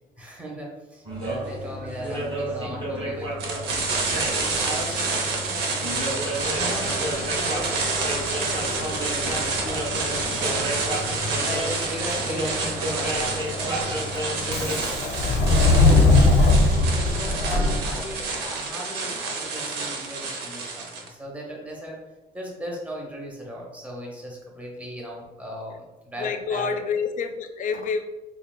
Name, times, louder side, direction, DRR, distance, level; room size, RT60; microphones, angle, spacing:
voice 1, 0.2-3.7 4.1-10.8 11.3-15.0 15.5-16.4 16.9-22.0 22.3-26.7, right 1 dB, 10° right, -2 dB, 0.9 m, -37 dB
sound 1, 1.1-14.8, equal, 30° right, 1.5 m, -32 dB
sound 2, 3.4-21.1, right 3 dB, 80° right, 0.8 m, -29 dB
Subway metro underground, 6.4-18.3, left 2 dB, 75° left, 0.8 m, -24 dB
voice 2, 26.2-28.0, left 5 dB, 50° left, 7 dB, 0.4 m, -27 dB
5.6 x 2.3 x 2.2 m, 1.1 s
cardioid pair, 110°, 17 cm